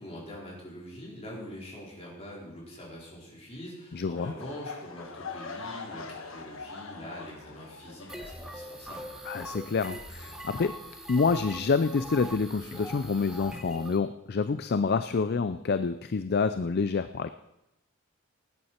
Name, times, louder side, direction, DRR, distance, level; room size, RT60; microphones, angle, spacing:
voice 1, 0.0-9.1, equal, 30° left, -4 dB, 4.4 m, -44 dB
voice 2, 3.9-4.3 9.3-10.7 11.1-17.3, left 4 dB, 50° left, 11 dB, 0.4 m, -27 dB
sound 1, 4.1-9.2 9.4-9.8 10.3-10.4, left 4 dB, 65° left, 1.3 m, -43 dB
sound 2, 8.1-14.0, right 1 dB, 5° right, 1.0 m, -42 dB
18.5 x 9.7 x 4.4 m, 0.89 s
head